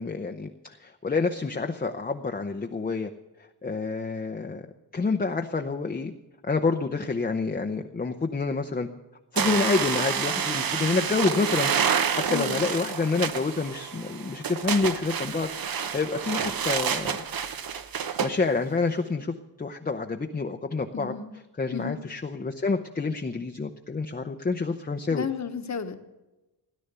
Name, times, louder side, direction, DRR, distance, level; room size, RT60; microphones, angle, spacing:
voice 1, 0.0-3.1 3.6-4.6 4.9-6.1 6.4-8.9 9.3-17.2 18.2-21.1 21.6-25.3, left 4 dB, 20° left, 5 dB, 0.6 m, -28 dB
sound 1, 9.4-18.3, right 7 dB, 55° right, 1.0 m, -28 dB
voice 2, 12.3-12.7 20.9-21.3 21.7-22.0 25.1-26.0, left 6 dB, 40° left, 8 dB, 1.2 m, -32 dB
17.0 x 11.0 x 6.8 m, 1.0 s
wide cardioid pair, 170°, 42 cm